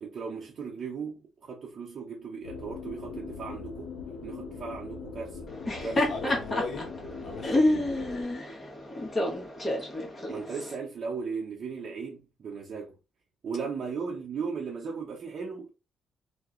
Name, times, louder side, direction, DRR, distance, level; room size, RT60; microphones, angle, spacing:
voice 1, 0.0-3.9 4.2-5.4 5.8-6.4 10.3-12.9 13.4-15.7, right 5 dB, 55° right, 0.8 m, -37 dB
sound 1, 2.4-8.2, left 5 dB, 85° left, 0.7 m, -41 dB
Laughter, 5.5-10.7, left 1 dB, 30° left, 1.3 m, -29 dB
voice 2, 6.1-6.9 7.2-8.1, left 3 dB, 55° left, 1.0 m, -38 dB
2.9 x 2.3 x 3.7 m
cardioid pair, 90°, 0 cm